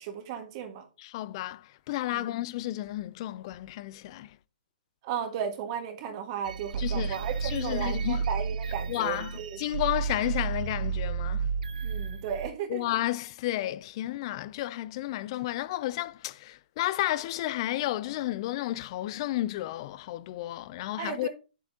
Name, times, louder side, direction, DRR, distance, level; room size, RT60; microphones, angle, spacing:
voice 1, 0.0-0.9 2.1-2.3 5.0-9.6 11.8-12.9 21.0-21.3, right 8 dB, 35° right, 1.7 m, -35 dB
voice 2, 1.0-4.4 6.8-8.2 8.9-11.5 12.7-21.3, left 15 dB, 35° left, 0.4 m, -32 dB
sound 1, 6.5-12.5, right 5 dB, 60° right, 0.5 m, -32 dB
9.0 x 7.7 x 2.8 m
hypercardioid pair, 150°, 5 cm